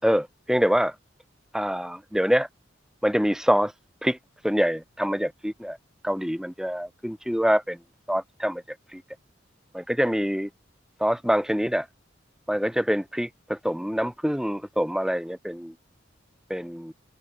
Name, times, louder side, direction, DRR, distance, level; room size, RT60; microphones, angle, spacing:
voice 1, 0.0-0.9 1.5-2.5 3.0-3.7 4.0-4.2 4.4-5.8 6.0-7.8 8.1-8.6 8.9-9.0 9.7-10.5 11.0-11.9 12.5-13.3 13.6-15.7 16.5-16.9, equal, 5° right, 7.6 m, -25 dB
open air
head